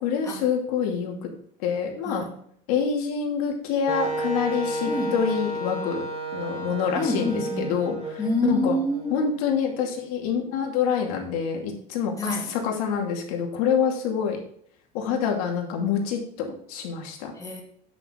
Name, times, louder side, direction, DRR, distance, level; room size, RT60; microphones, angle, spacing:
voice 1, 0.0-1.3 1.6-2.2 2.7-6.0 6.3-8.7 9.1-14.4 14.9-17.3, left 7 dB, 85° left, 1 dB, 2.6 m, -26 dB
voice 2, 2.0-2.4 4.9-5.2 6.9-7.8 8.2-9.3 12.2-12.5 17.3-17.6, left 1 dB, 20° left, 0 dB, 2.4 m, -28 dB
Wind instrument woodwind instrument, 3.9-9.7, right 1 dB, 30° right, 1.8 m, -32 dB
8.8 x 7.2 x 3.9 m, 0.62 s
cardioid pair, 145°, 19 cm